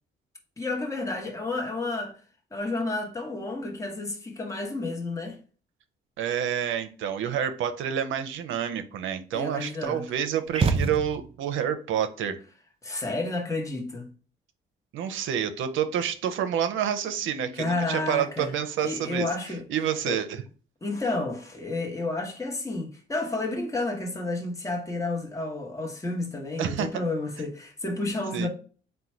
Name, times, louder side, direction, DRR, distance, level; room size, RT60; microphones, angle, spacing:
voice 1, 0.6-2.2 2.5-5.4 9.3-10.0 12.8-14.1 17.6-18.5 18.8-19.6 20.0-20.2 20.8-28.5, left 2 dB, 15° left, 0.9 m, -31 dB
voice 2, 6.2-12.4 14.9-19.3 19.7-20.4 26.6-27.0 28.3-28.5, right 9 dB, 80° right, 0.6 m, -28 dB
sound 1, 10.5-11.6, right 4 dB, 30° right, 0.4 m, -26 dB
3.8 x 2.2 x 4.3 m
cardioid pair, 90°, 20 cm